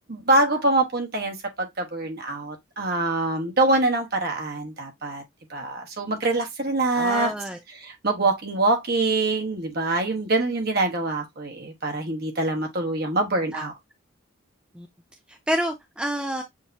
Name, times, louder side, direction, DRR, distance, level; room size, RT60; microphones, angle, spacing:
voice 1, 0.1-5.2 5.5-7.3 7.8-13.7, right 2 dB, 50° right, 1.1 m, -24 dB
voice 2, 6.9-7.6 13.5-13.7 14.7-14.9 15.3-16.4, equal, 5° right, 0.4 m, -28 dB
6.4 x 2.8 x 2.5 m
head